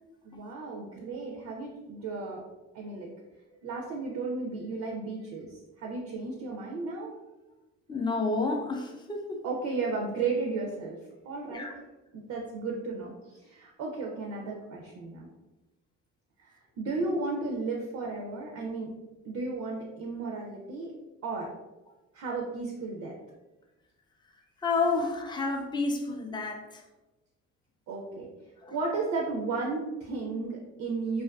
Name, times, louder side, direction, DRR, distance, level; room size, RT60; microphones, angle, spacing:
voice 1, 0.2-2.4 2.7-3.1 3.6-7.1 9.4-11.0 11.2-11.8 12.1-15.3 16.4-18.9 19.2-20.9 21.2-21.5 22.1-23.2 27.9-28.3 28.7-31.2, right 3 dB, 65° right, 0 dB, 0.5 m, -34 dB
voice 2, 7.9-9.4 11.5-11.7 24.6-26.7 28.6-28.7, left 3 dB, 15° left, 2 dB, 0.4 m, -30 dB
2.4 x 2.4 x 2.2 m, 1.1 s
cardioid pair, 90°, 30 cm